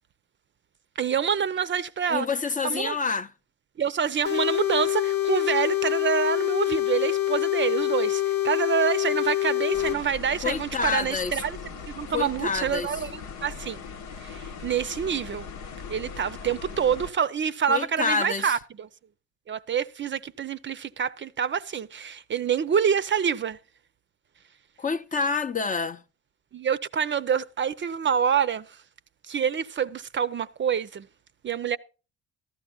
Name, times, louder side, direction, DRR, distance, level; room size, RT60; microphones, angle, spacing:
voice 1, 1.0-2.3 2.6-3.0 3.8-11.6 11.9-13.8 14.2-15.5 15.9-18.9 19.5-23.6 26.5-28.7 29.3-31.1 31.4-31.8, right 7 dB, 40° right, 0.5 m, -27 dB
voice 2, 2.1-3.3 10.4-11.4 12.1-12.9 17.7-18.5 24.8-26.0, left 5 dB, 25° left, 0.6 m, -27 dB
sound 1, 4.2-10.0, left 13 dB, 65° left, 0.9 m, -25 dB
sound 2, 9.7-17.1, left 5 dB, 85° left, 1.0 m, -39 dB
15.0 x 12.0 x 2.3 m
cardioid pair, 90°, 30 cm